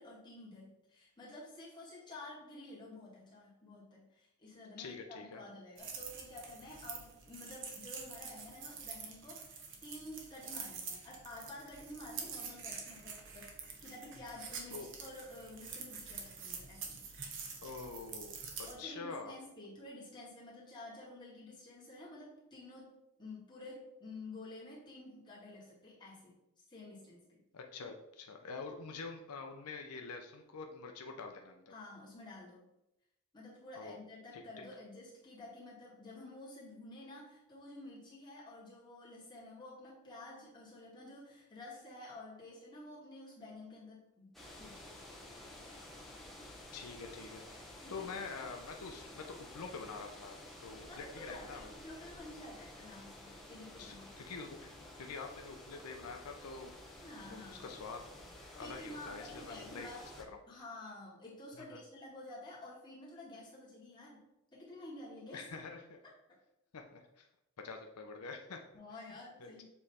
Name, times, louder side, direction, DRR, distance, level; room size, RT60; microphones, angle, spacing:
voice 1, 0.0-13.6 13.8-16.9 18.7-26.4 26.7-27.4 31.7-32.6 33.3-45.1 45.4-45.5 47.8-48.1 50.9-54.1 57.0-57.7 58.6-60.1 60.5-64.2 64.5-65.5 68.7-69.6, left 2 dB, 20° left, -7 dB, 2.0 m, -51 dB
voice 2, 4.8-5.4 14.7-14.9 17.6-19.4 27.5-31.7 33.7-34.0 34.3-34.7 46.7-47.4 47.9-51.7 53.7-54.7 55.0-56.7 57.3-58.1 58.6-60.4 61.5-61.8 65.3-66.0 66.7-67.3 67.6-68.6 69.4-69.6, left 4 dB, 80° left, 4 dB, 0.6 m, -46 dB
sound 1, 5.8-18.7, right 5 dB, 55° right, 1.0 m, -46 dB
sound 2, 44.3-60.2, left 1 dB, ahead, 0.9 m, -52 dB
7.1 x 3.2 x 4.2 m, 0.89 s
head